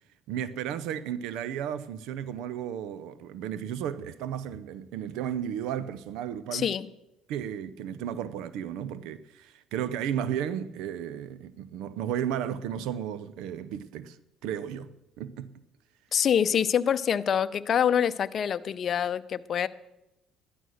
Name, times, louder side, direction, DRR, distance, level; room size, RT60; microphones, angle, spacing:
voice 1, 0.3-6.7 7.3-14.2 14.4-14.9 15.2-15.5 16.1-16.3, right 9 dB, 80° right, 0.6 m, -34 dB
voice 2, 6.5-6.9 16.1-19.7, left 8 dB, 50° left, 0.6 m, -25 dB
12.5 x 11.0 x 6.4 m
supercardioid pair, 90°, 0 cm